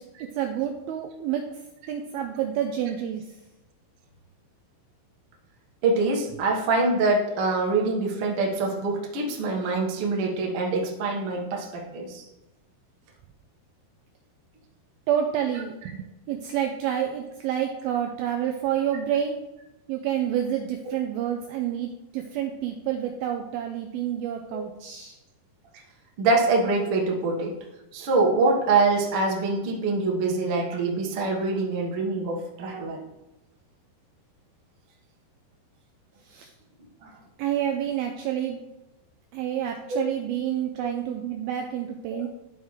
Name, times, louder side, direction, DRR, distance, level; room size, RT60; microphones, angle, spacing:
voice 1, 0.2-1.4 1.9-3.2 15.1-19.4 19.9-25.2 36.3-36.5 37.4-38.6 39.3-42.3, right 10 dB, 90° right, 4 dB, 2.1 m, -28 dB
voice 2, 5.8-12.2 26.2-27.5 27.9-33.0 37.0-37.1 42.1-42.3, right 3 dB, 70° right, -1 dB, 1.3 m, -24 dB
12.5 x 4.7 x 3.2 m, 0.97 s
omnidirectional pair, 4.9 m